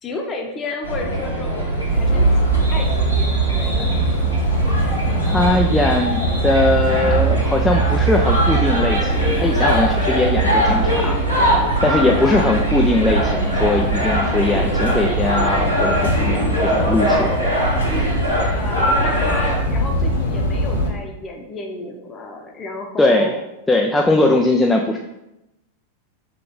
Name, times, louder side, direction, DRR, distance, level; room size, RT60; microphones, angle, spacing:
voice 1, 0.0-2.3 2.7-3.9 12.0-12.4 18.5-23.4, left 3 dB, 25° left, 2 dB, 0.8 m, -31 dB
sound 1, 0.8-19.6, right 1 dB, 90° right, 1.2 m, -21 dB
sound 2, 1.9-20.9, right 2 dB, 70° left, 0.9 m, -23 dB
voice 2, 5.2-11.2 11.8-17.3 23.0-23.3 23.7-25.0, left 2 dB, 10° left, 1 dB, 0.3 m, -20 dB
3.8 x 3.2 x 3.7 m, 0.90 s
figure-of-eight pair, 90°, 0 cm